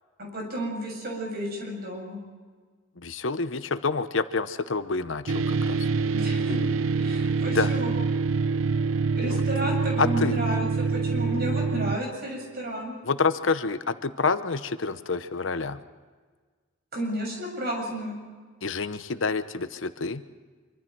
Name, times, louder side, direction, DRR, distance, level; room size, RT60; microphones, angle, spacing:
voice 1, 0.2-2.2 6.1-6.6 7.0-7.9 9.2-12.9 16.9-18.2, equal, 50° right, 0 dB, 7.0 m, -32 dB
voice 2, 3.0-5.8 7.5-7.7 9.3-9.4 10.0-10.4 13.0-15.8 18.6-20.2, left 4 dB, 70° left, 11 dB, 0.9 m, -28 dB
sound 1, 5.3-12.0, right 4 dB, 85° right, 0.6 m, -25 dB
26.0 x 24.5 x 4.6 m, 1.5 s
head